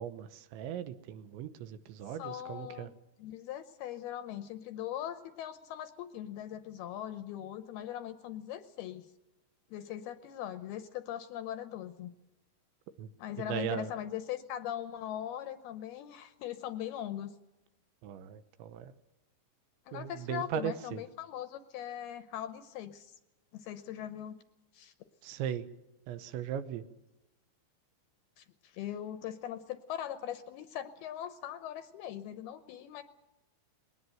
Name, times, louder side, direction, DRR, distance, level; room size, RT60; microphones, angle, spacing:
voice 1, 0.0-2.9 13.0-13.1 13.4-13.9 18.0-18.9 19.9-21.0 25.2-25.7 26.1-26.8, right 9 dB, 85° right, 11 dB, 3.3 m, -38 dB
voice 2, 2.2-2.9 3.2-9.1 9.7-12.1 13.2-17.4 19.9-23.2 23.5-24.4 24.7-24.9 28.4-33.0, left 11 dB, 75° left, 10 dB, 2.4 m, -40 dB
21.0 x 18.5 x 7.8 m, 0.98 s
omnidirectional pair, 5.2 m